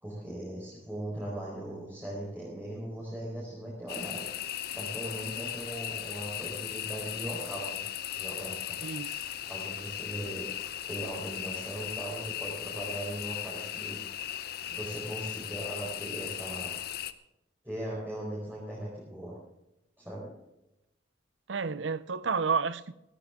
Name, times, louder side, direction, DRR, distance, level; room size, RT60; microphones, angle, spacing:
voice 1, 0.0-4.2 4.7-7.8 8.1-8.8 9.4-10.5 10.9-14.0 14.6-16.7 17.6-19.3 20.0-20.3, right 1 dB, 10° right, 4.4 m, -39 dB
sound 1, 3.9-17.1, left 11 dB, 55° left, 0.7 m, -37 dB
voice 2, 8.8-9.1 21.5-22.9, right 5 dB, 75° right, 0.7 m, -30 dB
17.0 x 14.5 x 3.7 m
head